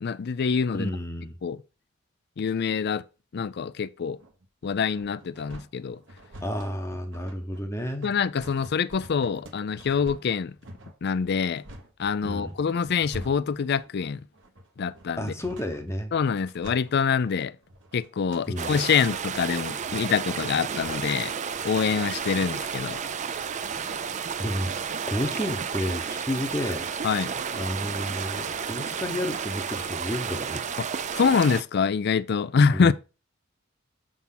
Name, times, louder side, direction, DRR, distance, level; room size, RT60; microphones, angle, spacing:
voice 1, 0.0-0.9 1.4-1.6 2.4-3.0 3.3-4.2 4.6-6.0 8.0-10.5 11.0-11.6 12.0-14.2 14.8-15.3 16.1-17.5 17.9-21.3 21.6-23.0 27.0-27.3 30.8-30.9 31.2-32.9, left 6 dB, 55° left, 0.4 m, -25 dB
voice 2, 0.7-1.4 6.4-8.1 12.2-12.6 15.2-16.1 18.5-18.8 24.0-26.9 27.5-30.7 32.7-32.9, equal, 15° left, 0.9 m, -31 dB
sound 1, 4.2-21.7, equal, 65° right, 1.3 m, -46 dB
sound 2, 18.6-31.6, right 6 dB, 35° right, 0.4 m, -32 dB
7.3 x 3.7 x 5.8 m
head